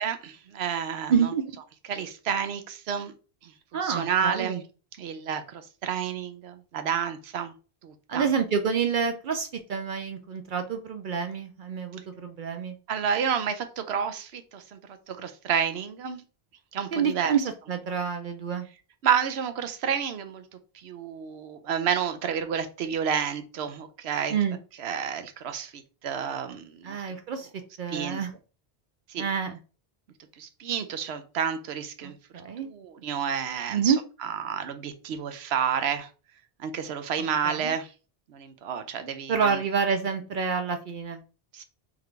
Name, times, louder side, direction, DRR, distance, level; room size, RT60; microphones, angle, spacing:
voice 1, 0.0-1.1 1.9-3.1 3.8-4.6 5.0-7.5 7.8-8.2 12.9-14.6 15.1-16.2 16.7-17.3 19.0-20.4 20.8-24.4 24.8-27.0 27.9-28.2 29.1-29.2 30.4-32.1 32.6-33.9 34.4-36.1 36.6-37.9 38.3-39.5 41.5-41.6, right 7 dB, 90° right, 9 dB, 0.9 m, -30 dB
voice 2, 1.1-1.4 3.7-4.6 8.1-12.7 16.9-18.7 24.3-24.6 26.8-27.5 27.8-28.3 29.2-29.6 32.0-32.7 33.7-34.0 37.4-37.7 39.3-41.2, right 6 dB, 60° right, 7 dB, 0.6 m, -28 dB
3.6 x 3.6 x 3.3 m, 0.35 s
omnidirectional pair, 1.0 m